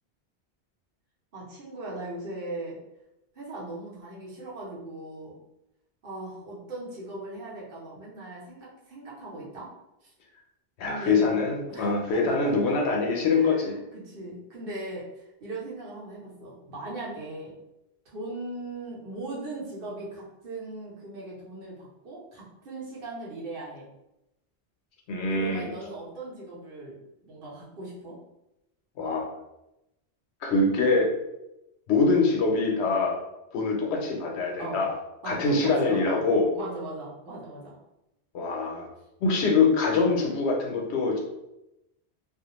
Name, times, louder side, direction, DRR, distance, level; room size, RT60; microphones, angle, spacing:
voice 1, 1.3-2.8 3.3-5.4 6.0-9.7 10.0-10.1 10.8-11.3 11.7-17.5 18.0-23.9 25.3-28.2 34.6-34.8 35.2-36.3 36.5-37.8, right 2 dB, 60° right, -5 dB, 1.0 m, -39 dB
voice 2, 10.8-13.7 25.1-25.7 29.0-29.3 30.4-31.1 31.9-33.2 33.5-34.9 35.2-36.5 38.3-38.9 39.2-41.2, left 3 dB, 80° left, 1 dB, 0.9 m, -24 dB
2.4 x 2.0 x 2.9 m, 0.90 s
omnidirectional pair, 1.1 m